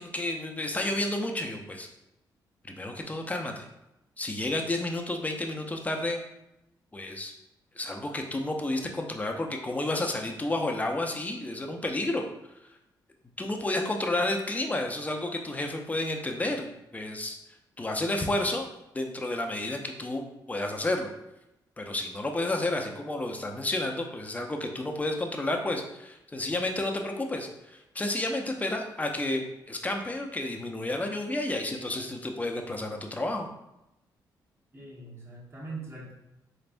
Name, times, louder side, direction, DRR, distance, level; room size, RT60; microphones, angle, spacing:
voice 1, 0.0-1.9 2.7-3.7 4.2-6.2 6.9-7.3 7.8-12.2 13.4-17.4 17.8-18.7 18.9-21.1 21.8-33.5, left 1 dB, 20° left, 3 dB, 0.6 m, -31 dB
voice 2, 34.7-36.1, right 3 dB, 30° right, -5 dB, 1.4 m, -41 dB
4.0 x 3.3 x 2.5 m, 0.90 s
cardioid pair, 75°, 8 cm